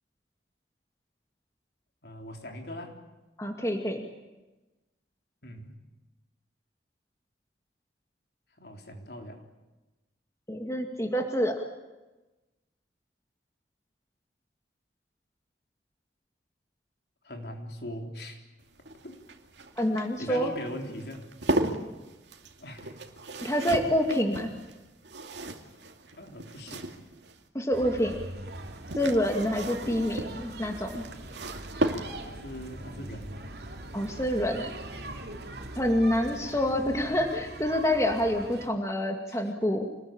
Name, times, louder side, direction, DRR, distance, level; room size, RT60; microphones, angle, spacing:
voice 1, 2.0-3.0 5.4-5.7 8.6-9.4 17.2-18.4 19.0-19.2 20.2-21.2 22.6-23.0 26.2-26.9 32.2-33.4 36.7-36.9 39.3-39.4, left 1 dB, 65° left, 3 dB, 3.8 m, -40 dB
voice 2, 3.4-4.0 10.5-11.5 19.8-20.5 23.4-24.5 27.5-28.2 28.9-31.0 33.9-34.7 35.8-39.9, equal, 15° left, 3 dB, 2.2 m, -27 dB
sound 1, 18.6-27.4 28.6-32.5 34.1-34.4 34.7-34.8, right 1 dB, 85° right, 2.5 m, -35 dB
sound 2, 27.7-38.7, right 1 dB, 65° right, 2.9 m, -41 dB
27.0 x 20.5 x 8.9 m, 1.1 s
head